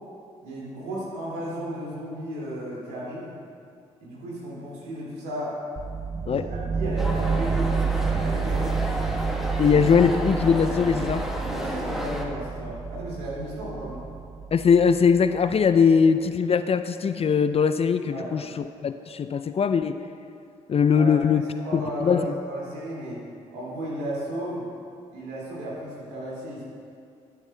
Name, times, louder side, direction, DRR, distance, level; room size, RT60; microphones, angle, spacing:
voice 1, 0.4-3.4 4.0-5.6 6.3-8.8 9.7-9.8 11.4-14.0 18.1-18.3 20.9-23.2 23.5-24.6 25.1-26.6, right 1 dB, 80° right, -5 dB, 2.3 m, -34 dB
sound 1, 5.8-15.6, right 5 dB, 35° right, 0.6 m, -29 dB
sound 2, 7.0-12.3, equal, ahead, 1.2 m, -32 dB
voice 2, 9.6-11.2 14.5-20.0 20.7-21.4 21.7-22.3, left 6 dB, 40° left, 11 dB, 0.4 m, -21 dB
13.5 x 8.2 x 2.2 m, 2.3 s
hypercardioid pair, 45°, 16 cm